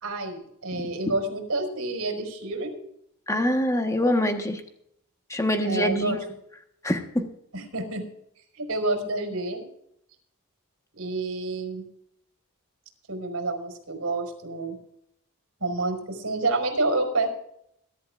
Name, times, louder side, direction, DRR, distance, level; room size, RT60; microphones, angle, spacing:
voice 1, 0.0-2.8 5.6-6.2 7.5-8.0 8.5-9.6 10.9-11.8 13.1-14.8 15.6-17.3, right 2 dB, 70° right, 3 dB, 4.7 m, -28 dB
voice 2, 3.3-4.6 5.3-6.2 6.8-7.3, left 1 dB, 15° left, 5 dB, 1.3 m, -24 dB
22.0 x 12.0 x 2.5 m, 0.72 s
head